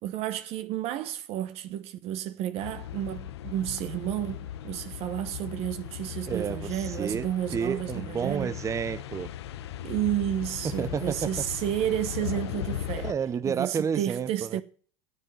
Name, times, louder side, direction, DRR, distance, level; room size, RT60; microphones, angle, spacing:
voice 1, 0.0-8.5 9.8-13.1 13.4-14.6, right 12 dB, 50° right, 1.2 m, -31 dB
sound 1, 2.6-13.1, left 11 dB, 85° left, 0.9 m, -38 dB
voice 2, 6.3-9.3 10.8-11.3 13.0-14.6, right 7 dB, 25° right, 0.6 m, -30 dB
9.6 x 7.6 x 9.4 m
supercardioid pair, 110°, 13 cm